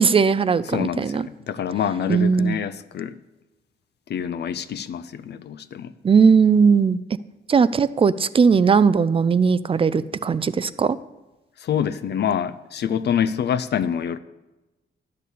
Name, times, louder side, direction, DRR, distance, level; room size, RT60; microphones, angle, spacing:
voice 1, 0.0-1.3 2.1-2.6 6.0-7.0 7.5-11.0, right 5 dB, 30° right, 16 dB, 0.4 m, -18 dB
voice 2, 0.7-3.1 4.1-5.9 11.6-14.2, left 8 dB, 60° left, 13 dB, 0.6 m, -26 dB
12.0 x 6.7 x 8.3 m, 1.1 s
wide cardioid pair, 145°, 19 cm